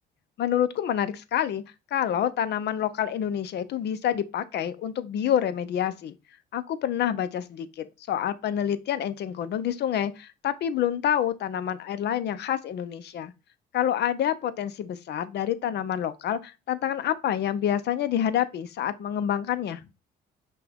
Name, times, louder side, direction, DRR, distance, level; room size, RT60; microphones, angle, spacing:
voice 1, 0.4-1.6 1.9-6.1 6.5-13.3 13.7-19.8, left 10 dB, 65° left, 0.6 m, -27 dB
5.9 x 2.3 x 3.4 m
cardioid pair, 100°, 19 cm